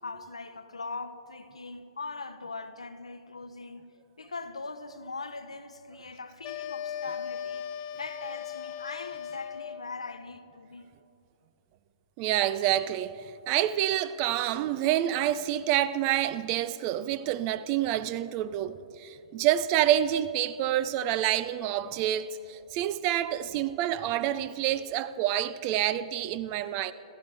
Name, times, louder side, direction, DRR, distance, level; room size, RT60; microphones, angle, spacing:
voice 1, 0.0-7.7 8.0-10.9, left 3 dB, 75° left, 0.9 m, -41 dB
sound 1, 6.4-9.9, left 9 dB, 30° left, 0.5 m, -38 dB
voice 2, 12.2-13.2 13.5-26.9, right 12 dB, 30° right, 0.4 m, -28 dB
28.5 x 13.0 x 3.4 m
figure-of-eight pair, 120°, 3 cm